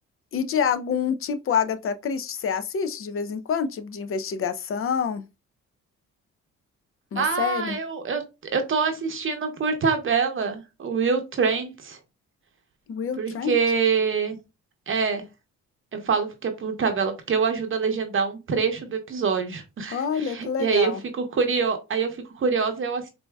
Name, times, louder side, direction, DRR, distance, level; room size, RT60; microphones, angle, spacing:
voice 1, 0.3-5.2 7.1-7.8 12.9-13.6 19.9-21.0, left 7 dB, 45° left, 0.5 m, -27 dB
voice 2, 7.2-8.2 8.5-12.0 13.2-14.4 14.9-15.2 15.9-23.1, right 5 dB, 45° right, 0.8 m, -25 dB
4.3 x 2.7 x 2.3 m
cardioid pair, 90°, 30 cm